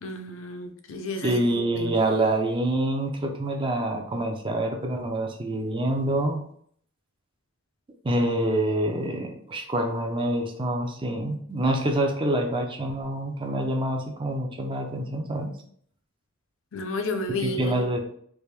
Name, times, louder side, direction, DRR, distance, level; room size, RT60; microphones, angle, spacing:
voice 1, 0.0-1.9 16.7-17.7, left 2 dB, 65° left, 5 dB, 0.5 m, -32 dB
voice 2, 1.2-6.4 8.0-15.5 17.4-18.0, right 1 dB, 25° right, 3 dB, 0.4 m, -26 dB
3.3 x 2.5 x 3.3 m, 0.63 s
head